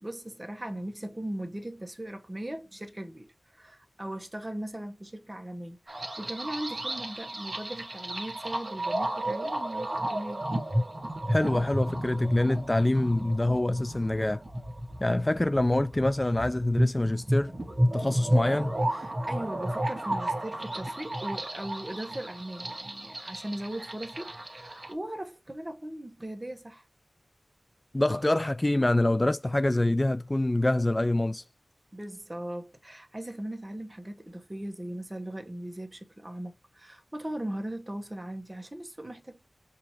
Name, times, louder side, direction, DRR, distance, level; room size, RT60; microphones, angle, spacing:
voice 1, 0.0-10.5 18.9-26.8 31.9-39.4, right 1 dB, 20° right, 1.2 m, -39 dB
sound 1, 5.9-24.9, equal, 35° right, 1.4 m, -32 dB
voice 2, 11.3-14.4 15.0-17.5 17.9-18.7 27.9-31.4, left 1 dB, 25° left, 0.4 m, -26 dB
6.2 x 2.8 x 2.9 m
wide cardioid pair, 60°, 0 cm